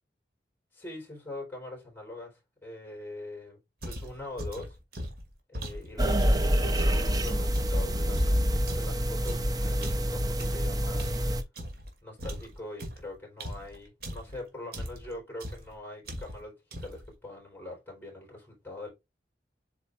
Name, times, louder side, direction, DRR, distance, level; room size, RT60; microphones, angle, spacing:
voice 1, 0.7-3.6 3.8-4.8 5.5-11.2 12.0-18.9, left 2 dB, 10° left, 4.0 m, -43 dB
sound 1, 3.8-7.0 7.5-11.9 12.2-14.4 14.7-15.1 15.4-15.7 16.0-16.5 16.7-17.1, equal, 60° right, 2.2 m, -39 dB
sound 2, 6.0-11.4, equal, 20° right, 0.7 m, -27 dB
8.1 x 4.9 x 2.5 m
head